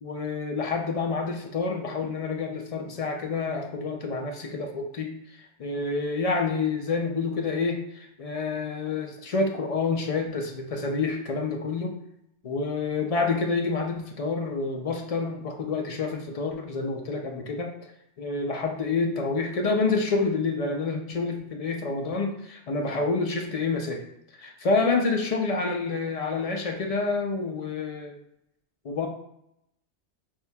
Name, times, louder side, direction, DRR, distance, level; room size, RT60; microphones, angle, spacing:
voice 1, 0.0-12.0 12.4-17.7 18.2-24.0 24.3-28.2 28.8-29.1, left 4 dB, 55° left, 2 dB, 0.4 m, -28 dB
5.8 x 2.6 x 2.2 m, 0.78 s
omnidirectional pair, 1.2 m